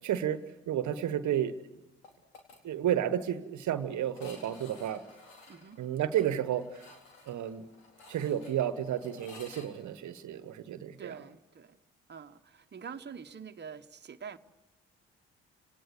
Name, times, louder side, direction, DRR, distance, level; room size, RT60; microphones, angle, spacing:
voice 1, 0.0-1.6 2.6-5.0 5.8-7.0 7.3-7.6 8.1-11.2, right 10 dB, 60° right, 12 dB, 1.2 m, -32 dB
sound 1, 2.0-2.6 2.9-3.0 3.3-3.4 4.1-9.7, left 3 dB, 80° left, 3.9 m, -53 dB
voice 2, 5.5-5.8 11.0-11.8 12.1-14.4, right 6 dB, 30° right, 6 dB, 1.2 m, -46 dB
30.0 x 18.5 x 8.3 m, 1.0 s
hypercardioid pair, 45°, 33 cm